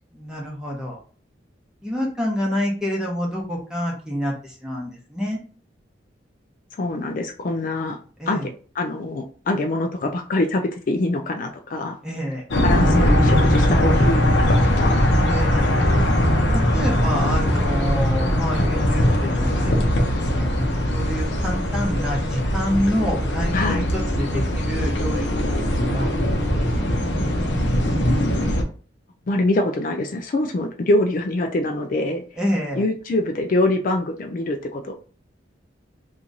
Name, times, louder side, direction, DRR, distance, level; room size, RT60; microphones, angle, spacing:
voice 1, 0.1-1.0 1.8-5.4 8.2-8.5 12.0-12.4 15.2-15.7 16.5-20.7 20.9-25.4 25.7-26.1 26.5-26.9 27.2-27.3 32.4-32.8, equal, 5° right, -2 dB, 1.0 m, -28 dB
voice 2, 6.7-8.0 8.3-8.5 8.8-12.0 12.6-15.2 23.5-23.9 29.3-32.2 32.7-34.9, left 2 dB, 50° left, 4 dB, 0.4 m, -24 dB
sound 1, 12.5-28.6, equal, 85° left, 0.7 m, -20 dB
2.9 x 2.5 x 3.8 m, 0.40 s
head